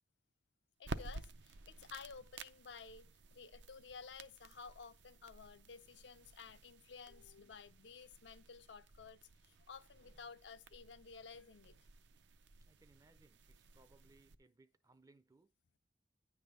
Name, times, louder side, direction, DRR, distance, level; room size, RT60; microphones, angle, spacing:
voice 1, 0.8-11.8, left 5 dB, 85° left, 0.6 m, -54 dB
sound 1, 0.8-14.3, right 3 dB, 80° right, 0.6 m, -53 dB
voice 2, 12.6-15.5, right 3 dB, 20° right, 0.4 m, -68 dB
9.9 x 3.4 x 6.6 m
head